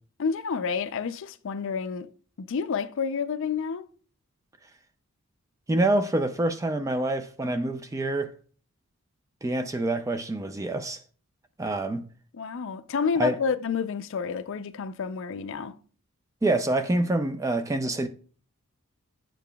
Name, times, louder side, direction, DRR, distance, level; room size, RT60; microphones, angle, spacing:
voice 1, 0.2-2.1 2.4-3.9 12.3-15.7, left 6 dB, 60° left, 0.4 m, -29 dB
voice 2, 5.7-8.3 9.4-11.0 11.6-12.0 13.2-13.4 16.4-18.1, right 2 dB, 15° right, 0.3 m, -26 dB
9.0 x 6.8 x 2.3 m
head